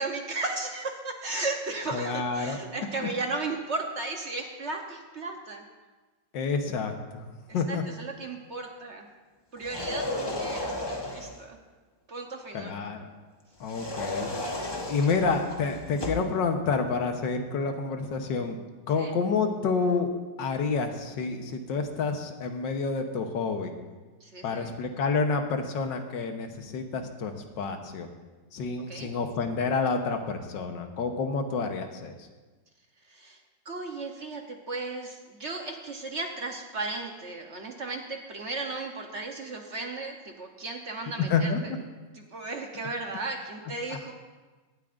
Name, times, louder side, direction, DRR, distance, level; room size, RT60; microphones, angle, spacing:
voice 1, 0.0-5.6 7.7-9.1 9.5-11.6 12.1-12.7 19.0-19.1 24.2-24.7 28.9-29.1 33.1-33.4 33.6-41.5 42.3-44.1, right 3 dB, 50° right, 2 dB, 1.0 m, -35 dB
voice 2, 1.9-2.6 3.0-3.1 6.3-7.3 7.5-7.8 12.5-13.1 13.6-14.3 14.9-18.6 18.9-20.1 20.4-23.7 24.4-28.1 28.5-32.3 41.3-41.6 43.9-44.0, left 4 dB, 80° left, 6 dB, 1.7 m, -29 dB
sound 1, 9.6-11.4 13.6-16.3, left 1 dB, 20° left, 0.8 m, -34 dB
17.5 x 12.5 x 2.5 m, 1.3 s
omnidirectional pair, 1.9 m